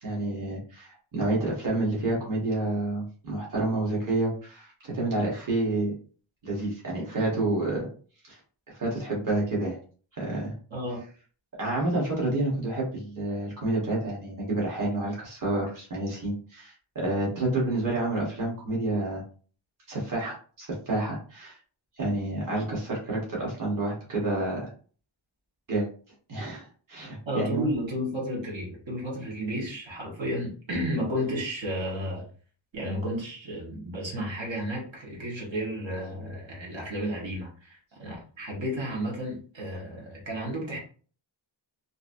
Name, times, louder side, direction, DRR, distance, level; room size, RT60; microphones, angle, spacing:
voice 1, 0.0-5.9 6.4-7.9 8.2-8.4 8.8-9.8 10.2-10.5 11.6-19.2 19.9-21.6 22.0-24.7 25.7-25.9 26.3-27.7, right 2 dB, 45° right, -4 dB, 1.2 m, -29 dB
voice 2, 10.7-11.0 27.3-32.2 32.7-40.8, equal, 75° right, -3 dB, 1.3 m, -32 dB
2.9 x 2.6 x 2.5 m, 0.41 s
wide cardioid pair, 180°, 46 cm